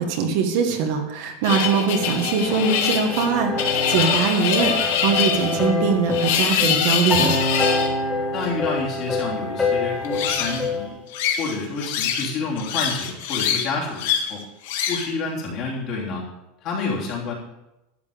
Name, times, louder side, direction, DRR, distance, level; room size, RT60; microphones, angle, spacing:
voice 1, 0.0-7.3, right 5 dB, 55° right, 4 dB, 1.6 m, -22 dB
sound 1, 1.4-7.9 10.0-10.7 11.1-12.3 12.6-13.7 14.0-14.3 14.6-15.1, left 8 dB, 70° left, 1.7 m, -24 dB
sound 2, 1.5-10.9, left 3 dB, 10° left, 1.6 m, -27 dB
voice 2, 8.3-11.0 11.4-14.4 14.9-16.2 16.6-17.3, left 4 dB, 40° left, -4 dB, 3.3 m, -29 dB
12.0 x 8.3 x 5.2 m, 0.94 s
supercardioid pair, 170°, 0 cm